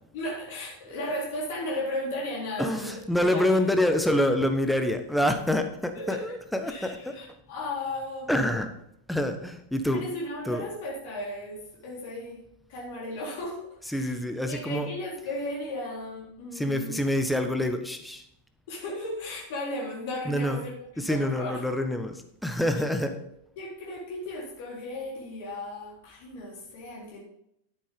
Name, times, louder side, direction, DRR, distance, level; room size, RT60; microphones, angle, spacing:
voice 1, 0.1-3.4 5.9-6.4 6.7-8.3 9.9-12.4 12.7-14.2 14.5-17.0 18.7-21.6 23.1-23.2 23.6-27.2, left 1 dB, 50° left, -3 dB, 3.8 m, -35 dB
voice 2, 2.6-7.1 8.3-8.7 9.1-10.0 10.4-10.6 13.9-14.9 16.5-18.2 20.2-20.6 21.0-23.1, left 1 dB, ahead, 6 dB, 1.3 m, -26 dB
11.5 x 10.0 x 3.7 m, 0.76 s
figure-of-eight pair, 90°, 0 cm